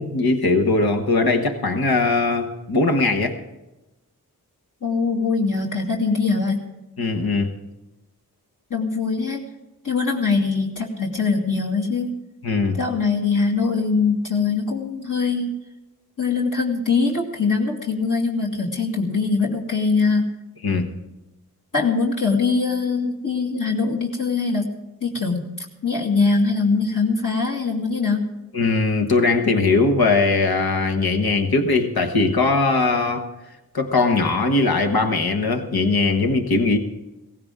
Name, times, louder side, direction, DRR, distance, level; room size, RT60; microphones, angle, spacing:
voice 1, 0.0-3.4 7.0-7.5 12.4-12.8 20.6-20.9 28.5-33.3 33.7-36.8, left 3 dB, 75° left, 5 dB, 1.4 m, -20 dB
voice 2, 4.8-6.7 8.7-9.4 9.8-12.1 12.7-15.5 16.2-20.3 21.7-24.7 25.0-28.2, left 4 dB, 60° left, -3 dB, 2.3 m, -22 dB
17.0 x 15.5 x 3.7 m, 1.0 s
cardioid pair, 45°, 37 cm